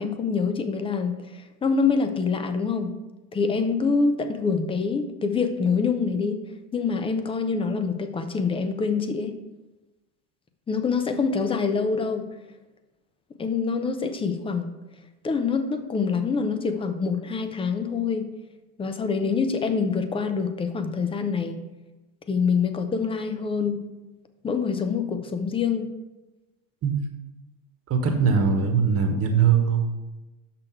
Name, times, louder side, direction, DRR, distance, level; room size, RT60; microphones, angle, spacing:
voice 1, 0.0-2.9 3.3-6.4 6.7-9.3 10.7-12.2 13.4-14.7 15.2-18.3 18.8-21.6 22.3-23.8 24.4-25.9, left 5 dB, 10° left, 8 dB, 0.5 m, -25 dB
voice 2, 27.9-29.8, right 6 dB, 30° right, 4 dB, 1.3 m, -21 dB
6.4 x 5.9 x 4.6 m, 1.1 s
supercardioid pair, 115°, 46 cm